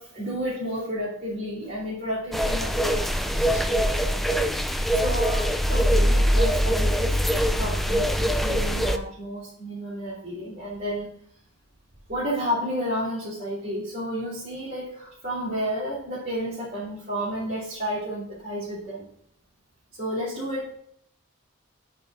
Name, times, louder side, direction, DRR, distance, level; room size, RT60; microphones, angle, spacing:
voice 1, 0.0-4.7 4.9-7.2 7.6-11.1 12.1-19.1 20.0-20.8, equal, 45° right, -8 dB, 3.2 m, -31 dB
sound 1, 2.3-9.0, equal, ahead, 0.4 m, -23 dB
9.1 x 5.8 x 3.6 m, 0.66 s
head